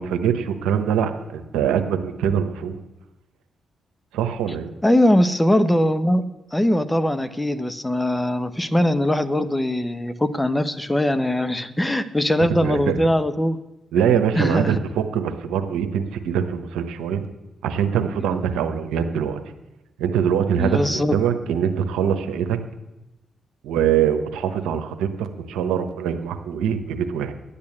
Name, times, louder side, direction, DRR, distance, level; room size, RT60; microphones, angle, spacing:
voice 1, 0.0-2.8 4.1-4.7 12.4-12.9 13.9-17.3 17.6-19.4 20.0-22.6 23.6-27.3, right 8 dB, 90° right, 7 dB, 1.1 m, -23 dB
voice 2, 4.8-6.2 6.5-13.6 14.0-14.8 20.6-21.2, left 1 dB, 15° left, 11 dB, 1.1 m, -21 dB
11.5 x 8.7 x 8.7 m, 1.0 s
supercardioid pair, 50°, 0 cm